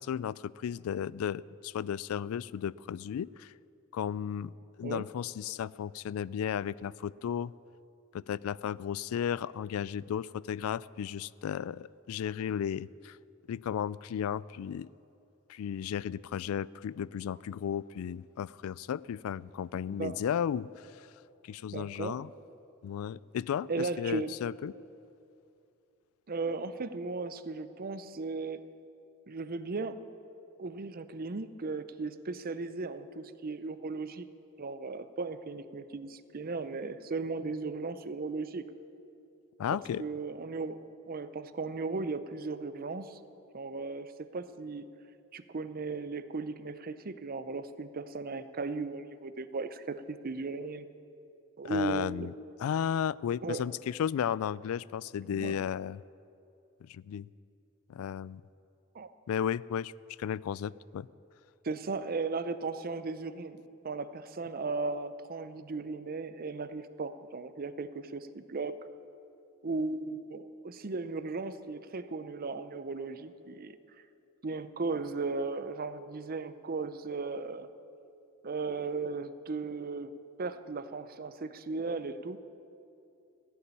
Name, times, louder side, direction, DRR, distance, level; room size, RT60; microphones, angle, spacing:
voice 1, 0.0-3.5 3.9-4.5 4.8-7.5 8.1-13.2 13.5-14.9 15.5-21.1 21.4-22.3 22.8-24.7 39.6-40.0 51.6-52.3 52.6-56.0 56.8-57.3 57.9-58.4 59.3-59.9 60.2-61.1, left 8 dB, 80° left, 21 dB, 0.3 m, -34 dB
voice 2, 21.7-22.2 23.7-24.3 26.3-28.6 29.3-30.0 30.6-34.3 34.6-38.7 40.0-43.2 43.5-44.9 45.3-50.9 51.6-52.3 53.4-53.7 55.3-55.6 58.9-59.1 61.6-68.7 69.6-73.8 74.4-77.7 78.4-80.1 80.4-82.4, right 3 dB, 45° right, 12 dB, 0.6 m, -36 dB
16.0 x 7.0 x 9.8 m, 2.7 s
head